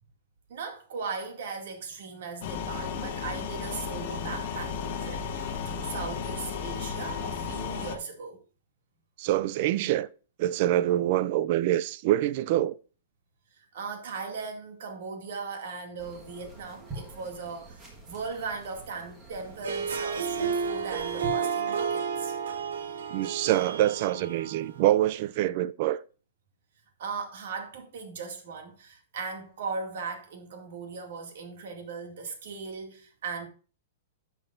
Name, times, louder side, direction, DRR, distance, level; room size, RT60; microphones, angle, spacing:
voice 1, 0.5-8.4 13.5-22.3 27.0-33.5, right 4 dB, 55° right, 2.3 m, -38 dB
sound 1, 2.4-8.0, left 6 dB, 40° left, 1.1 m, -34 dB
voice 2, 9.2-10.1 10.4-12.8 23.1-26.0, right 13 dB, 35° right, 0.4 m, -25 dB
sound 2, 16.0-21.4, right 2 dB, 10° right, 1.5 m, -45 dB
Harp, 19.5-24.9, right 6 dB, 75° right, 1.3 m, -31 dB
11.0 x 7.0 x 2.6 m
hypercardioid pair, 175°, 0 cm